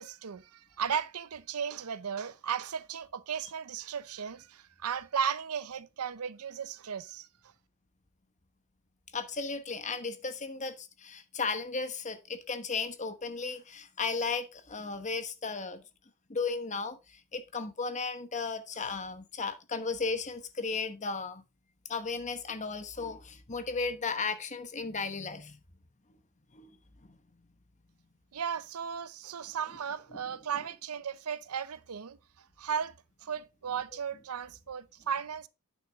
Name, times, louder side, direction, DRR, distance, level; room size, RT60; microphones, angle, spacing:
voice 1, 0.0-7.3 28.3-32.9 33.2-35.5, right 7 dB, 90° right, 0.6 m, -35 dB
voice 2, 9.1-15.8 16.3-21.4 21.9-25.6 26.5-26.8 27.0-27.2, left 4 dB, 35° left, 1.1 m, -35 dB
8.8 x 6.4 x 3.5 m
head